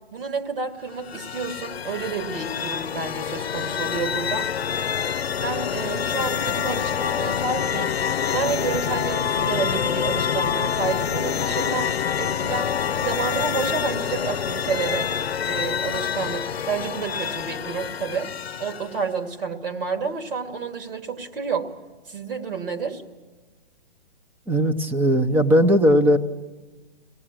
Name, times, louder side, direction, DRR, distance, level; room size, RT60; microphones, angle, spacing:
voice 1, 0.1-4.5 5.4-8.0 8.3-11.9 12.2-12.7 13.0-15.2 15.4-18.3 18.6-21.7 22.1-23.0, right 5 dB, 65° right, 4 dB, 2.7 m, -29 dB
sound 1, 0.9-19.1, left 8 dB, 90° left, 0.6 m, -27 dB
voice 2, 24.5-26.2, equal, 5° right, 10 dB, 0.7 m, -18 dB
23.5 x 18.5 x 7.5 m, 1.3 s
hypercardioid pair, 140°, 30 cm